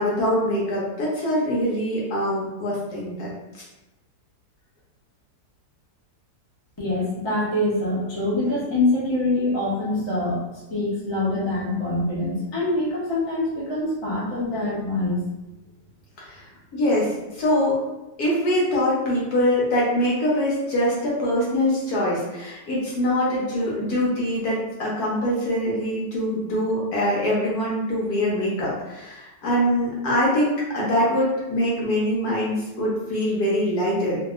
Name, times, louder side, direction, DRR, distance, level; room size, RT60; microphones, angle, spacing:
voice 1, 0.0-3.3 3.5-3.6 16.2-16.4 16.7-17.8 18.2-34.2, left 1 dB, 65° left, -5 dB, 1.2 m, -23 dB
voice 2, 6.8-15.2, left 2 dB, 25° left, -8 dB, 0.6 m, -25 dB
2.8 x 2.7 x 2.3 m, 1.0 s
omnidirectional pair, 1.9 m